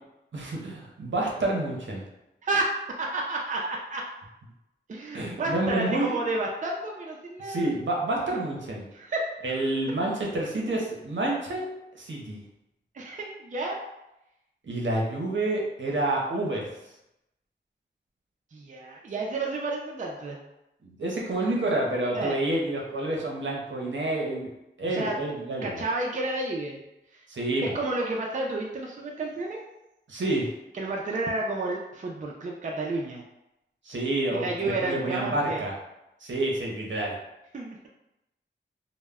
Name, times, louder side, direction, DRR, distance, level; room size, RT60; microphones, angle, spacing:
voice 1, 0.3-2.0 5.1-6.2 7.4-8.9 9.4-12.4 14.6-16.7 20.8-24.5 24.8-25.8 27.3-27.8 30.1-30.5 33.8-35.7 36.2-37.2, right 2 dB, 80° right, -2 dB, 0.6 m, -28 dB
voice 2, 2.4-4.0 4.9-7.7 8.9-9.7 12.9-13.8 18.5-20.4 22.1-22.4 24.9-25.2 25.6-26.8 27.1-27.2 27.6-29.6 30.7-33.2 34.3-35.7 37.5-37.9, right 2 dB, 40° right, -1 dB, 0.4 m, -31 dB
2.1 x 2.0 x 3.4 m, 0.89 s
wide cardioid pair, 85°, 19 cm